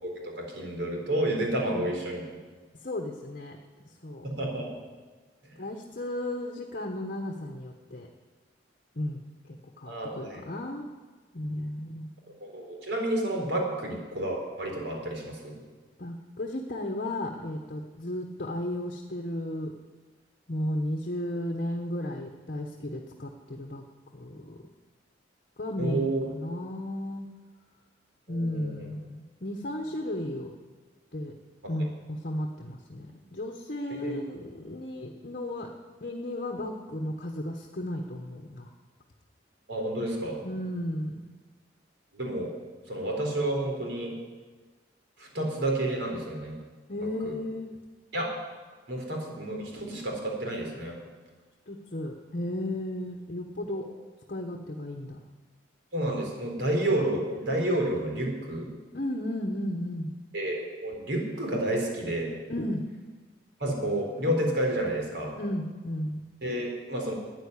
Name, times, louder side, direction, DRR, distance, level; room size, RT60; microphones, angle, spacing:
voice 1, 0.0-2.2 4.2-4.7 9.9-10.5 12.4-15.6 25.8-26.2 28.3-28.7 34.0-34.1 39.7-40.4 42.1-42.5 42.9-44.1 45.2-46.6 47.0-47.3 48.1-48.3 48.9-50.9 53.8-53.9 55.9-58.7 60.3-62.3 63.6-65.3 66.4-67.1, right 1 dB, 75° right, 0 dB, 4.0 m, -30 dB
voice 2, 2.8-3.6 4.0-4.3 5.6-8.1 8.9-10.9 11.3-12.1 16.0-19.7 20.5-23.8 24.1-24.6 25.6-27.3 28.3-30.5 31.1-31.3 31.7-35.7 36.0-38.7 40.4-41.2 46.9-47.7 51.7-53.9 54.3-55.2 58.9-60.1 62.5-62.8 65.4-66.2, left 1 dB, 50° left, 3 dB, 1.2 m, -34 dB
13.5 x 9.3 x 9.7 m, 1.4 s
head